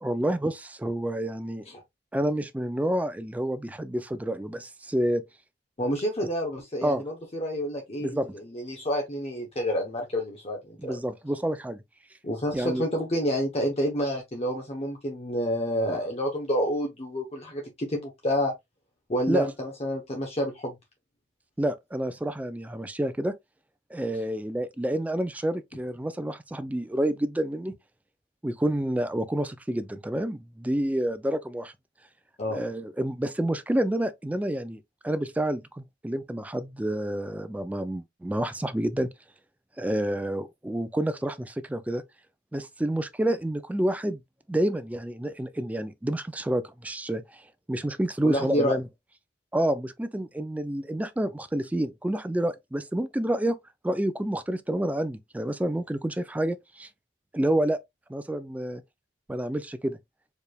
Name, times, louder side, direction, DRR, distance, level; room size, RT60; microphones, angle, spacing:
voice 1, 0.0-1.6 2.1-5.2 6.8-7.0 8.0-8.3 10.8-11.8 12.5-12.9 19.3-19.5 21.6-23.3 23.9-27.7 28.4-31.7 32.5-39.1 39.8-42.0 42.5-44.2 44.5-47.4 47.7-48.8 49.5-53.6 53.8-56.9 57.3-57.8 58.1-58.8 59.3-60.0, right 1 dB, 10° right, 0.3 m, -28 dB
voice 2, 5.8-10.9 12.2-18.5 19.1-20.7 32.4-32.6 48.2-48.8, equal, 35° left, 0.8 m, -29 dB
4.6 x 3.3 x 2.2 m
head